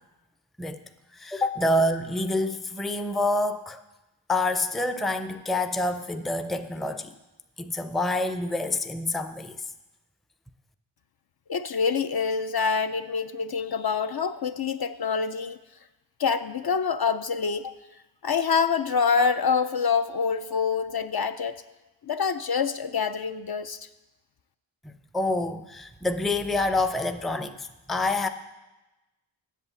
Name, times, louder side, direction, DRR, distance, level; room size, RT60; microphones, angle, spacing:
voice 1, 1.1-3.8 4.3-7.1 7.6-9.6 25.1-28.3, left 2 dB, ahead, 9 dB, 0.4 m, -27 dB
voice 2, 11.5-15.6 16.2-17.7 18.2-21.6 22.0-23.8, left 5 dB, 50° left, 10 dB, 0.5 m, -26 dB
8.2 x 7.5 x 7.0 m, 1.0 s
wide cardioid pair, 55°, 48 cm